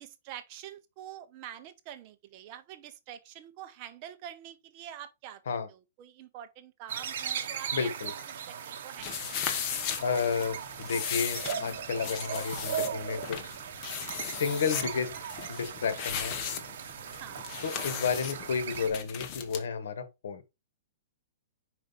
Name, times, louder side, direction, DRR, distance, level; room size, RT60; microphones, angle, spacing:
voice 1, 0.0-8.2 8.5-9.5 17.2-17.6, right 11 dB, 35° right, 0.7 m, -46 dB
sound 1, 6.9-18.9, right 8 dB, 55° right, 1.1 m, -38 dB
voice 2, 7.7-8.1 10.0-13.4 14.4-15.1 15.5-16.4 17.6-20.4, left 6 dB, 75° left, 1.4 m, -31 dB
sound 2, 9.0-19.6, left 8 dB, 30° left, 0.9 m, -37 dB
5.1 x 4.8 x 4.0 m
hypercardioid pair, 160°, 0 cm